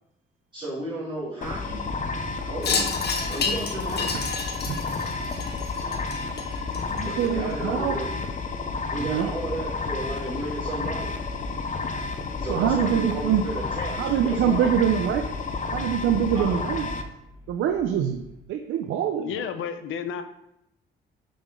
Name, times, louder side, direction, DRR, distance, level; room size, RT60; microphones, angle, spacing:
voice 1, 0.5-1.9 2.4-2.9 3.3-4.1 7.0-8.2 8.9-11.1 12.4-14.7 16.3-16.6, right 1 dB, 25° right, -9 dB, 2.3 m, -33 dB
sound 1, 1.4-17.0, left 4 dB, 40° left, 0.7 m, -31 dB
Wind chime, 2.6-7.3, left 5 dB, 55° left, 1.2 m, -30 dB
voice 2, 7.2-8.0 9.0-9.3 12.5-13.4 14.0-15.2 15.7-16.9 17.5-18.2 18.5-19.3, right 9 dB, 80° right, 6 dB, 0.5 m, -24 dB
sound 2, 12.3-18.4, equal, 20° left, 1.5 m, -46 dB
voice 3, 19.2-20.2, left 7 dB, 80° left, 9 dB, 0.6 m, -31 dB
5.7 x 5.0 x 3.7 m, 0.81 s
cardioid pair, 90°, 20 cm